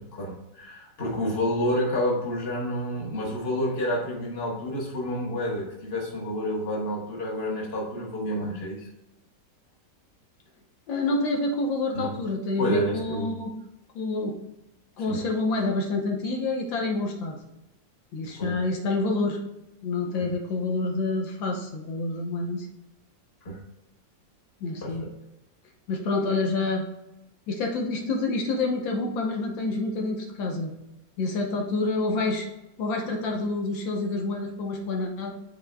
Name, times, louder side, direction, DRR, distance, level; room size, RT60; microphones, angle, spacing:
voice 1, 0.0-8.9 11.9-12.1 12.6-13.3 15.1-15.2 18.4-18.6 20.2-20.3 23.4-23.6 24.8-25.1, equal, 35° left, -2 dB, 1.5 m, -29 dB
voice 2, 10.9-13.5 13.9-14.3 15.0-17.4 18.1-19.4 19.8-22.7 24.6-25.0 25.9-26.8 27.5-30.7 31.2-32.5 32.8-35.3, left 3 dB, 85° left, 1 dB, 1.7 m, -28 dB
11.5 x 4.3 x 2.3 m, 0.92 s
omnidirectional pair, 2.0 m